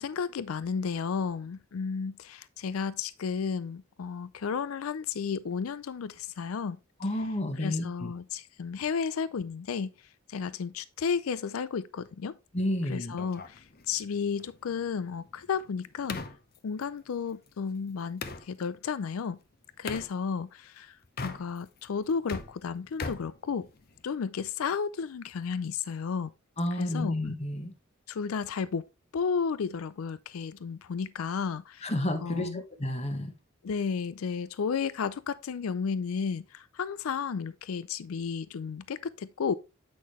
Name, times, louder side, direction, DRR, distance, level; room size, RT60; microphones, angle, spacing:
voice 1, 0.0-6.8 7.6-9.9 10.3-12.3 12.9-16.2 16.6-19.4 19.8-21.0 21.2-23.7 24.0-26.3 26.8-27.1 28.1-28.8 29.1-31.9 32.2-32.6 33.6-39.6, left 6 dB, 80° left, 0.4 m, -33 dB
voice 2, 7.0-8.1 12.5-13.1 26.6-27.7 31.8-33.3, left 1 dB, 30° left, 1.2 m, -31 dB
sound 1, 13.2-18.5 19.9-20.1 21.0-21.8 22.1-24.1, left 4 dB, 45° left, 0.8 m, -41 dB
8.5 x 5.9 x 3.0 m
head